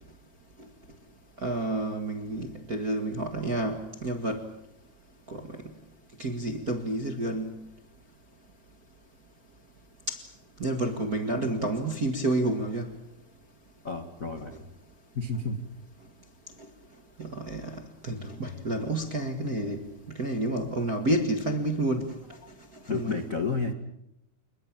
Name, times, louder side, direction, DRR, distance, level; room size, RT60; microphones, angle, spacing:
voice 1, 1.4-4.4 5.3-5.7 6.2-7.5 10.1-10.2 10.6-12.9 17.2-22.1 22.9-23.2, right 1 dB, 45° right, 1.1 m, -30 dB
voice 2, 13.8-14.7 15.1-15.6 22.9-23.7, left 4 dB, 70° left, 0.7 m, -31 dB
28.5 x 21.5 x 7.5 m
omnidirectional pair, 4.6 m